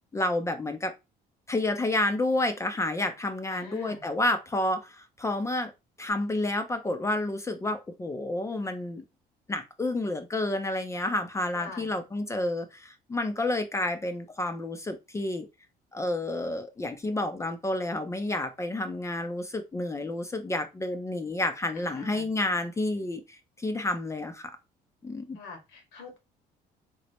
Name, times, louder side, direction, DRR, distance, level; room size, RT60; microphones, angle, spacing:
voice 1, 0.1-0.9 1.5-5.7 6.0-9.0 9.5-15.5 15.9-24.5 25.0-25.4, left 2 dB, 15° left, 8 dB, 0.4 m, -30 dB
voice 2, 3.5-4.0 11.5-11.9 21.7-22.3 25.3-26.2, left 4 dB, 85° left, 4 dB, 1.3 m, -44 dB
3.0 x 2.0 x 4.1 m, 0.25 s
cardioid pair, 110°, 17 cm